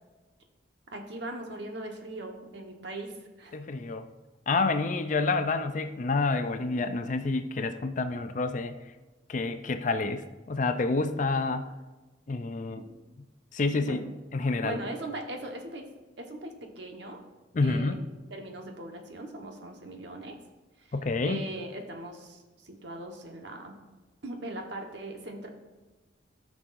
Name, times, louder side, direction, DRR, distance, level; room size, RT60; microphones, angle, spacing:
voice 1, 0.9-3.6 12.8-12.9 13.7-14.1 14.6-15.9 16.2-17.2 17.6-20.4 20.8-21.0 21.2-23.8 24.2-25.5, right 2 dB, 60° right, 3 dB, 1.2 m, -40 dB
voice 2, 3.5-4.1 4.5-8.7 9.3-11.7 12.3-12.8 13.5-14.0 14.3-14.8 17.5-18.0 20.9-21.4, left 3 dB, 40° left, 9 dB, 0.5 m, -28 dB
13.5 x 6.1 x 2.6 m, 1.2 s
head